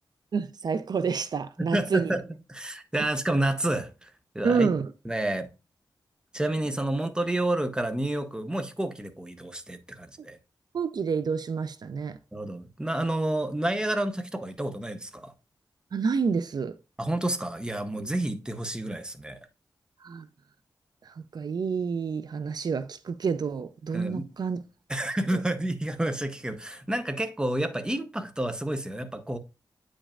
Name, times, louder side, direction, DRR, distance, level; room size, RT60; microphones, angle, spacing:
voice 1, 0.3-2.1 4.4-4.9 10.7-12.2 15.9-16.7 18.0-18.1 20.0-20.3 21.1-24.6 25.3-25.4, right 5 dB, 65° right, 0.4 m, -28 dB
voice 2, 1.7-4.7 5.0-5.5 6.3-10.4 12.3-15.3 17.0-19.4 23.9-24.3 24.9-29.4, right 1 dB, 10° right, 0.8 m, -29 dB
8.4 x 5.2 x 2.4 m
wide cardioid pair, 100°, 8 cm